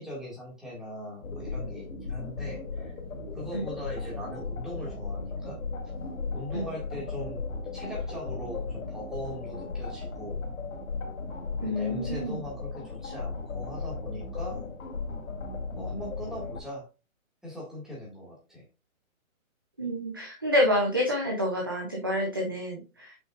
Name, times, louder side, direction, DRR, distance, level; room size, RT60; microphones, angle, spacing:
voice 1, 0.0-2.9 3.3-5.6 6.3-7.4 7.7-10.4 11.6-14.7 15.7-16.9 17.4-18.6, left 1 dB, ahead, -5 dB, 1.8 m, -40 dB
sound 1, 1.2-16.6, left 3 dB, 80° left, 2.7 m, -36 dB
voice 2, 11.6-12.4 19.8-23.1, left 1 dB, 15° right, 0 dB, 0.5 m, -28 dB
7.8 x 5.5 x 2.4 m, 0.30 s
hypercardioid pair, 170°, 42 cm